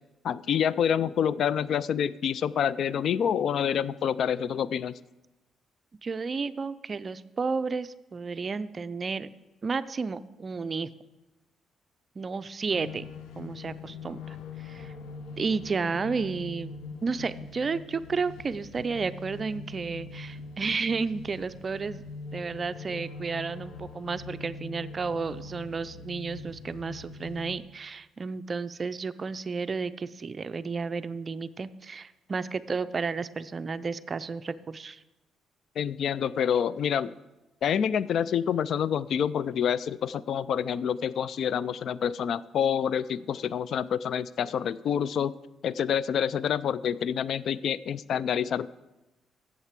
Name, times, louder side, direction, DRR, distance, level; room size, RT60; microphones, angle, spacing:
voice 1, 0.2-4.9 35.8-37.1 37.6-45.3 45.6-48.7, left 8 dB, 65° left, 18 dB, 0.3 m, -27 dB
voice 2, 6.0-9.3 9.6-10.9 12.2-13.1 13.4-14.9 15.4-16.7 17.0-22.0 22.3-35.0, right 4 dB, 35° right, 14 dB, 0.4 m, -32 dB
sound 1, 12.7-27.6, left 4 dB, 85° left, 0.9 m, -43 dB
8.0 x 7.5 x 7.3 m, 1.0 s
cardioid pair, 90°, 0 cm